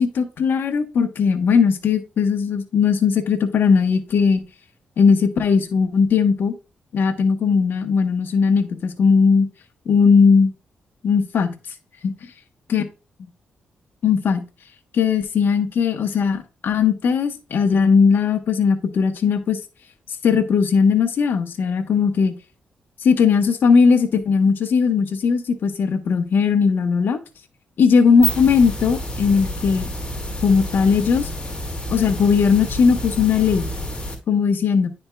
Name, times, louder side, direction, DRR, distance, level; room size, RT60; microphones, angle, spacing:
voice 1, 0.0-4.4 5.0-6.5 6.9-9.5 9.9-10.5 11.0-11.5 12.0-12.1 12.7-12.8 14.0-14.4 14.9-19.6 20.1-22.3 23.0-27.2 27.8-29.9 30.4-31.3 31.9-33.7 34.3-34.9, left 5 dB, 65° left, 6 dB, 1.0 m, -18 dB
sound 1, 28.0-34.1, equal, 25° left, 2.1 m, -29 dB
10.0 x 4.4 x 2.2 m, 0.29 s
cardioid pair, 70°, 4 cm